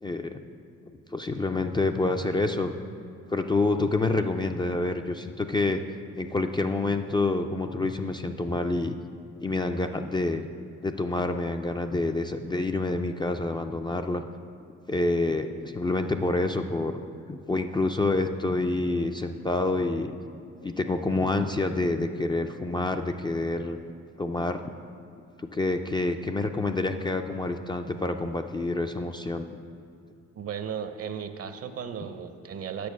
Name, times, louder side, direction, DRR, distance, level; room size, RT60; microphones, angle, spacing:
voice 1, 0.0-0.4 1.1-2.7 3.3-5.8 6.2-9.0 9.4-10.5 10.8-14.2 14.9-17.0 17.3-20.1 20.6-23.8 24.2-24.6 25.4-29.6, left 2 dB, 15° left, 5 dB, 0.3 m, -27 dB
voice 2, 30.4-32.9, right 7 dB, 50° right, 9 dB, 0.7 m, -35 dB
8.6 x 6.4 x 6.1 m, 2.5 s
cardioid pair, 90°, 30 cm